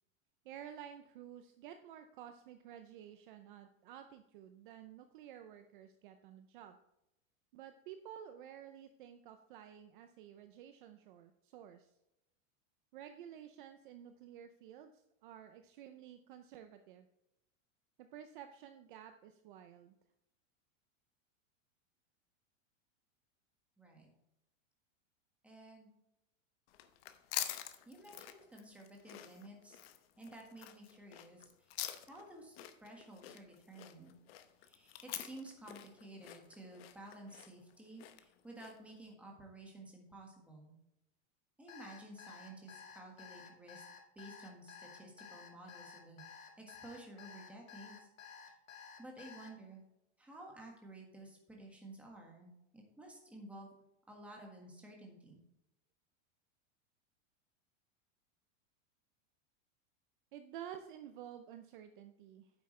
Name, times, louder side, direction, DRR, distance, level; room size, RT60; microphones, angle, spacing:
voice 1, 0.4-6.8 7.5-12.0 12.9-17.1 18.0-20.0 60.3-62.5, right 10 dB, 40° right, 8 dB, 0.6 m, -52 dB
voice 2, 23.8-24.1 25.4-25.9 27.8-29.8 30.2-31.8 32.1-34.2 34.6-40.7 41.6-43.8 44.1-46.2 46.6-48.1 48.4-48.5 49.0-49.8 50.2-53.7 54.1-55.4, right 1 dB, 5° right, 0 dB, 1.6 m, -53 dB
sound 1, 26.7-38.9, left 13 dB, 50° left, 0.9 m, -46 dB
Alarm, 41.7-49.5, left 7 dB, 85° left, 2.1 m, -53 dB
9.5 x 8.1 x 3.2 m, 0.87 s
supercardioid pair, 170°, 38 cm